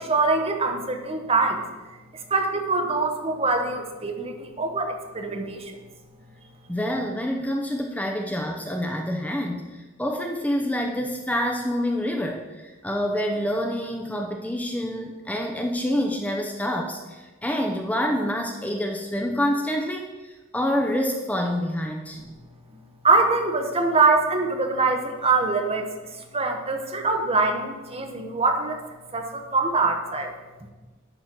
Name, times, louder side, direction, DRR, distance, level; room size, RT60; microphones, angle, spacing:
voice 1, 0.0-1.6 2.1-5.7 23.0-28.8 29.1-30.4, right 3 dB, 30° right, 3 dB, 1.0 m, -24 dB
voice 2, 6.7-22.2, equal, 5° left, 2 dB, 0.6 m, -27 dB
11.0 x 4.2 x 6.0 m, 1.2 s
head